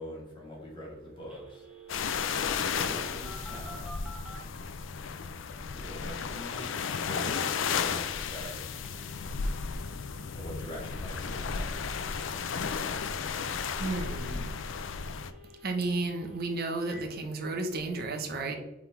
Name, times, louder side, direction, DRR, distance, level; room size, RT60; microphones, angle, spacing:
voice 1, 0.0-1.6 2.6-4.0 5.6-8.6 10.3-11.9, equal, 25° left, -3 dB, 2.0 m, -44 dB
Telephone, 1.3-4.4 8.8-17.0, equal, 5° right, 1.2 m, -51 dB
sound 1, 1.9-15.3, left 6 dB, 75° left, 0.5 m, -34 dB
voice 2, 13.8-14.5 15.6-18.6, right 3 dB, 55° right, 4 dB, 1.0 m, -32 dB
5.7 x 3.7 x 4.6 m, 0.98 s
head